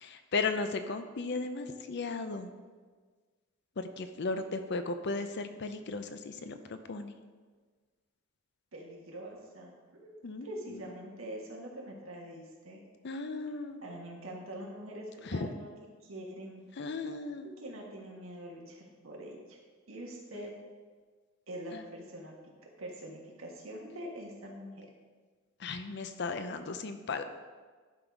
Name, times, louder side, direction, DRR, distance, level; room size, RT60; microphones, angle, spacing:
voice 1, 0.0-2.5 3.8-7.1 10.2-10.8 13.0-13.8 15.3-15.5 16.8-17.5 21.7-21.8 25.6-27.2, left 3 dB, 55° left, 9 dB, 0.6 m, -36 dB
voice 2, 8.7-12.8 13.8-15.7 16.0-16.7 17.6-19.6 19.9-20.5 21.5-22.3 22.8-24.9, right 1 dB, 75° right, -1 dB, 1.6 m, -44 dB
11.5 x 4.0 x 4.6 m, 1.4 s
head